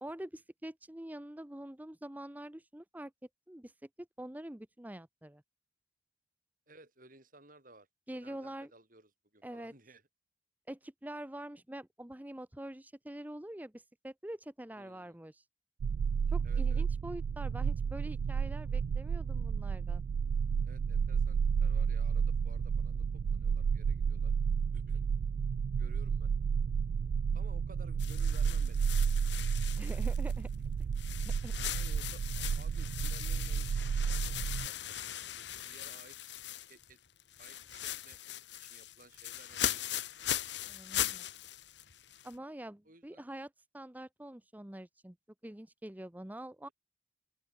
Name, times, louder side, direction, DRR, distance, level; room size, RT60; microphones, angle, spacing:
voice 1, 0.0-3.1 3.5-3.7 4.0-5.4 8.1-8.7 9.4-9.7 10.7-15.5 16.3-20.0 29.8-30.5 31.2-31.5 40.6-41.3 42.2-45.2 45.4-46.7, right 1 dB, 10° right, 0.7 m, -45 dB
voice 2, 6.7-7.9 8.2-10.0 14.7-15.2 16.4-16.8 20.6-24.3 24.7-25.1 25.8-26.3 27.3-29.2 31.7-34.3 34.6-36.4 36.7-37.0 37.4-38.2 38.6-39.8 42.8-43.2, right 2 dB, 45° right, 6.3 m, -58 dB
sound 1, 15.8-34.7, right 6 dB, 75° right, 0.3 m, -32 dB
sound 2, 28.0-30.5 31.0-36.9 37.2-42.3, left 11 dB, 70° left, 1.6 m, -39 dB
open air
head